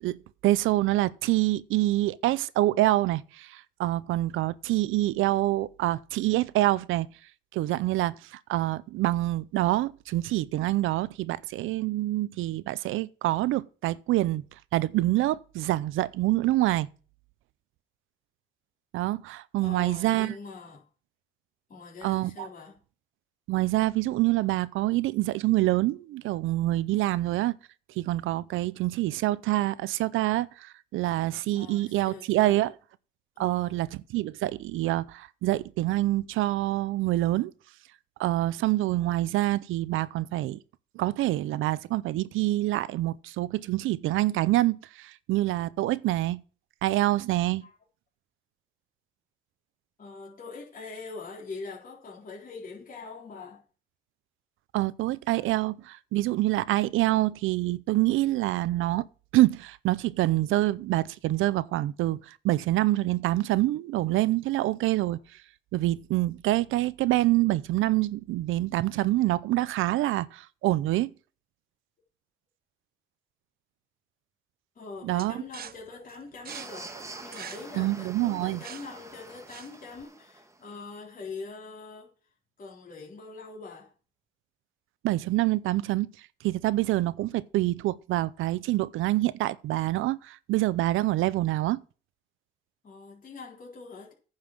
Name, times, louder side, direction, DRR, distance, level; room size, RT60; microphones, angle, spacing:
voice 1, 0.0-7.1 7.5-14.4 14.7-16.9 18.9-20.3 22.0-22.5 23.5-27.6 28.0-32.7 33.4-37.5 38.2-40.6 40.9-46.4 46.8-47.6 54.7-59.1 59.3-65.2 65.7-71.1 75.0-75.4 77.8-78.6 85.0-86.1 86.4-91.8, right 16 dB, 85° right, 0.6 m, -26 dB
voice 2, 19.6-20.9 21.7-22.8 31.5-32.7 33.4-33.8 47.6-47.7 50.0-53.6 55.4-55.5 65.0-65.2 74.8-82.1 82.6-83.9 92.8-94.1, left 4 dB, 45° left, 3.8 m, -43 dB
sound 1, 75.2-80.0, right 9 dB, 50° right, 0.6 m, -45 dB
sound 2, 76.5-80.7, right 2 dB, 15° right, 1.6 m, -46 dB
9.7 x 5.7 x 7.3 m
cardioid pair, 90°, 20 cm